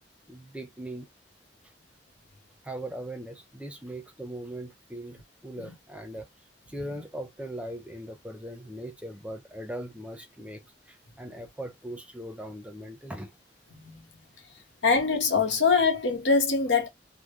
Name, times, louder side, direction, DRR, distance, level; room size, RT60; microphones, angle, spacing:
voice 1, 0.3-1.1 2.6-6.3 6.7-13.3, right 1 dB, 5° right, 0.6 m, -39 dB
voice 2, 13.7-14.0 14.8-16.9, left 4 dB, 85° left, 1.3 m, -23 dB
3.7 x 2.2 x 3.0 m
head